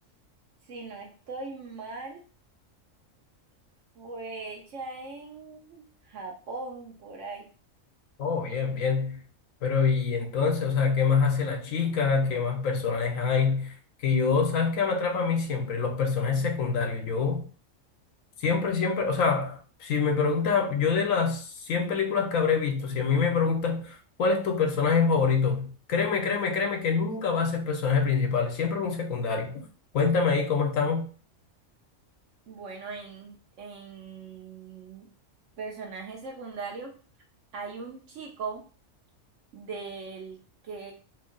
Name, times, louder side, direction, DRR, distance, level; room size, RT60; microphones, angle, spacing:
voice 1, 0.6-2.2 4.0-7.5 32.5-35.1 35.6-36.9 37.5-38.6 39.5-40.9, right 4 dB, 70° right, 0.9 m, -40 dB
voice 2, 8.2-9.2 9.6-13.7 14.0-17.4 18.4-29.7 29.9-31.0, left 5 dB, 80° left, 1.0 m, -25 dB
2.9 x 2.6 x 3.7 m
omnidirectional pair, 1.4 m